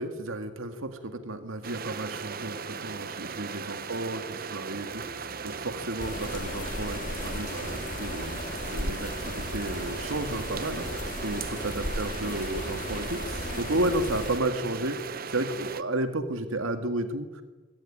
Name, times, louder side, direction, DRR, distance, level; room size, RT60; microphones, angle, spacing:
voice 1, 0.0-17.4, right 1 dB, 85° right, 8 dB, 2.1 m, -33 dB
sound 1, 1.6-15.8, right 5 dB, 45° right, 1.0 m, -38 dB
sound 2, 6.0-14.4, left 1 dB, 40° left, 3.3 m, -36 dB
24.0 x 16.5 x 10.0 m, 1.2 s
head